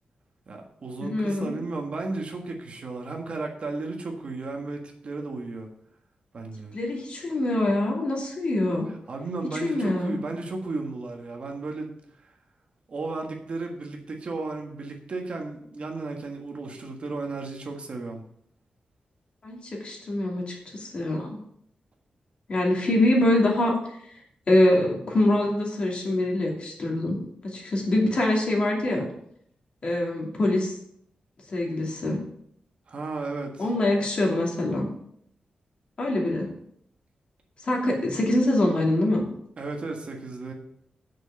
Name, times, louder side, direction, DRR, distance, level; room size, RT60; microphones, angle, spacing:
voice 1, 0.5-5.7 6.3-6.7 9.1-11.9 12.9-18.2 32.9-33.6 39.6-40.5, right 3 dB, 45° right, 2 dB, 1.5 m, -34 dB
voice 2, 1.0-1.5 6.7-8.9 9.5-10.2 19.4-21.4 22.5-24.2 24.5-29.1 29.8-30.7 31.5-32.2 33.6-34.9 36.0-36.5 37.6-39.3, left 1 dB, 45° left, -1 dB, 2.6 m, -24 dB
8.1 x 6.3 x 7.0 m, 0.69 s
wide cardioid pair, 180°, 3 cm